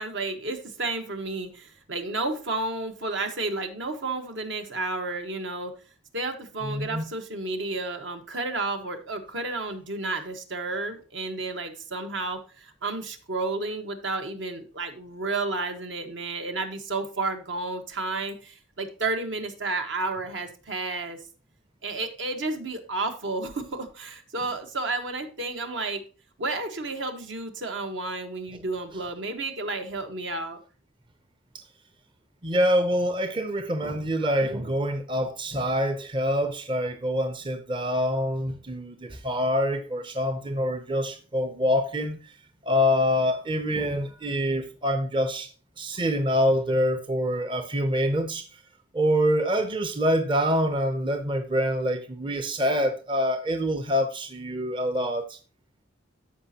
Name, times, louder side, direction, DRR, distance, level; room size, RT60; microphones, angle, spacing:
voice 1, 0.0-5.7 6.1-21.2 21.8-26.0 26.4-30.6, right 3 dB, 70° right, 1.3 m, -31 dB
voice 2, 6.6-7.1 32.4-42.2 42.6-45.5 45.8-48.4 48.9-55.4, equal, 25° right, 0.6 m, -25 dB
13.5 x 5.2 x 2.8 m
head